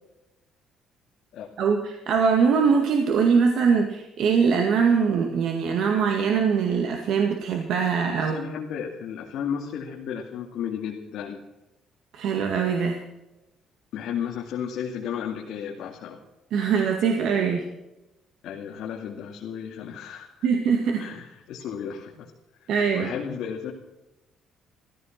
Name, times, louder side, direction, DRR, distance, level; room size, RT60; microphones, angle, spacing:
voice 1, 1.6-8.5 12.1-13.0 16.5-17.6 20.4-21.0 22.7-23.1, right 6 dB, 60° right, 3 dB, 2.0 m, -22 dB
voice 2, 8.2-11.4 13.9-16.2 18.4-20.3 21.0-22.3 22.9-23.7, left 8 dB, 65° left, -1 dB, 2.4 m, -33 dB
16.0 x 15.5 x 6.0 m, 0.97 s
cardioid pair, 175°, 0 cm